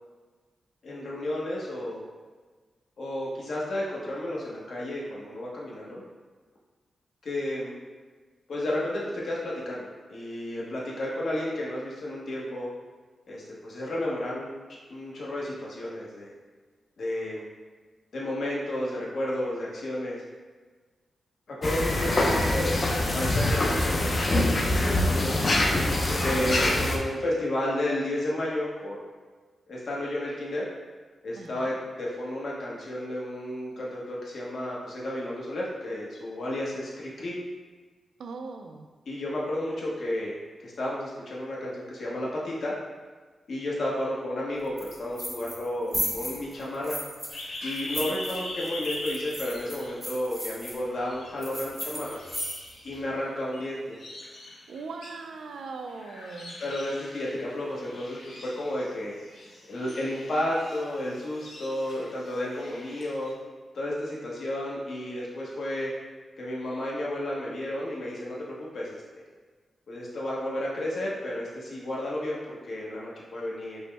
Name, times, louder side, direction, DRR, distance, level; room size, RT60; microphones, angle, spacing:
voice 1, 0.8-2.0 3.0-6.0 7.2-7.7 8.5-12.7 13.3-14.5 14.9-16.3 17.0-17.4 18.1-20.2 21.5-22.4 23.1-25.4 26.2-29.1 29.7-30.6 31.2-37.4 39.1-42.7 43.5-47.0 47.6-52.2 52.8-53.8 56.6-59.1 59.6-63.3 63.7-65.9 66.4-69.0 69.9-73.8, left 1 dB, 65° left, -5 dB, 1.0 m, -32 dB
sound 1, 21.6-27.0, left 1 dB, 40° left, 0.5 m, -24 dB
voice 2, 31.3-31.7 38.2-38.9 54.7-56.5, right 4 dB, 90° right, 5 dB, 0.4 m, -40 dB
sound 2, 44.8-45.7 45.9-47.4 47.7-50.7 51.4-52.8, equal, ahead, 0.7 m, -35 dB
sound 3, 47.3-50.5 50.9-51.8 52.0-63.3, left 1 dB, 85° left, 0.8 m, -42 dB
5.2 x 2.1 x 3.4 m, 1.4 s
wide cardioid pair, 120°, 0 cm